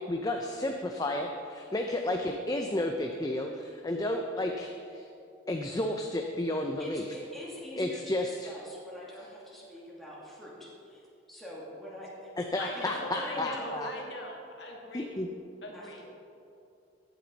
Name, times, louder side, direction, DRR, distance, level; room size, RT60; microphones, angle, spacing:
voice 1, 0.0-5.1 5.5-7.1 7.8-8.5 12.4-13.9 14.9-15.3, left 1 dB, 20° left, 3 dB, 0.6 m, -32 dB
voice 2, 6.8-11.0 11.3-12.3 12.7-14.0 15.7-16.0, equal, ahead, -7 dB, 2.6 m, -44 dB
voice 3, 12.6-15.2 15.6-16.0, left 2 dB, 60° left, 0 dB, 1.8 m, -41 dB
15.0 x 9.2 x 4.1 m, 2.6 s
head